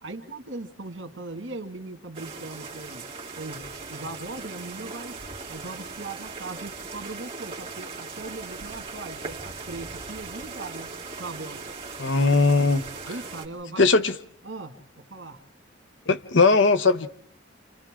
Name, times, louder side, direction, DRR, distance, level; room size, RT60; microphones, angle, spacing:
voice 1, 0.0-3.0 3.3-10.9 11.2-11.7 13.0-13.9 14.4-15.4, right 2 dB, 85° right, 2.1 m, -39 dB
sound 1, 2.1-13.5, right 4 dB, 30° right, 3.1 m, -39 dB
voice 2, 12.0-12.8 13.8-14.1 16.1-17.1, left 3 dB, 75° left, 1.0 m, -19 dB
29.0 x 28.5 x 3.8 m
head